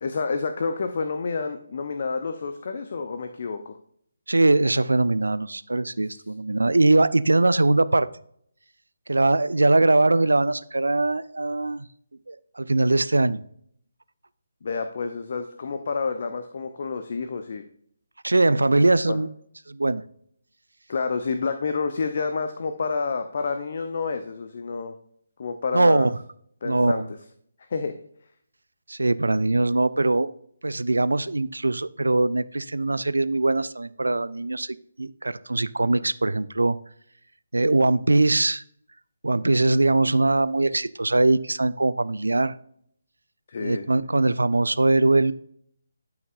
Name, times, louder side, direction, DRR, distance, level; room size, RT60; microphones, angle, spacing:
voice 1, 0.0-3.7 6.1-6.2 14.6-17.6 19.1-19.2 20.9-24.9 25.4-26.1 26.6-27.2 27.7-27.9 43.5-43.8, left 4 dB, 45° left, 8 dB, 0.6 m, -29 dB
voice 2, 4.3-8.1 9.1-11.9 12.3-13.4 18.2-19.3 19.7-20.0 25.7-26.1 26.6-27.1 28.9-30.3 30.6-36.8 37.5-38.6 39.2-42.5 43.6-45.3, right 2 dB, 70° right, 17 dB, 0.4 m, -21 dB
12.0 x 5.8 x 2.5 m, 0.66 s
figure-of-eight pair, 145°, 0 cm